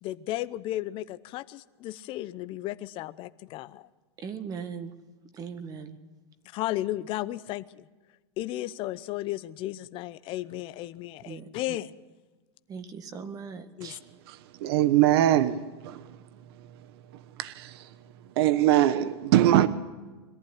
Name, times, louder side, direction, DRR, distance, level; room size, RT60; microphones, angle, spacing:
voice 1, 0.0-3.9 6.5-7.9 8.4-11.9 13.8-14.0, left 15 dB, 40° left, 0.8 m, -34 dB
voice 2, 4.2-4.9 5.3-6.0 11.3-11.5 12.7-14.0, right 6 dB, 25° right, 1.6 m, -39 dB
voice 3, 14.6-16.0 17.4-17.8 18.4-19.7, right 13 dB, 65° right, 1.1 m, -22 dB
22.5 x 14.5 x 9.8 m
supercardioid pair, 140°, 14 cm